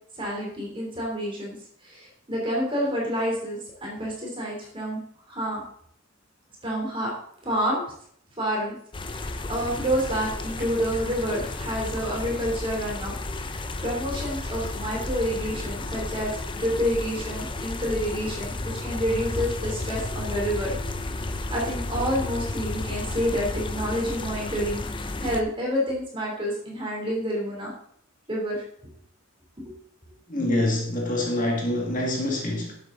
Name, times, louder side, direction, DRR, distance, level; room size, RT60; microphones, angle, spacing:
voice 1, 0.2-1.6 1.8-5.0 5.3-5.6 6.6-7.1 7.4-7.8 8.4-8.7 9.0-13.5 13.8-20.7 21.2-24.8 25.2-27.7 28.3-28.6 29.6-29.7, equal, 25° right, -3 dB, 3.3 m, -28 dB
sound 1, 8.9-25.4, left 2 dB, 25° left, 0.7 m, -32 dB
voice 2, 30.3-32.7, left 1 dB, 40° left, 0 dB, 2.0 m, -25 dB
11.0 x 7.9 x 3.9 m, 0.65 s
head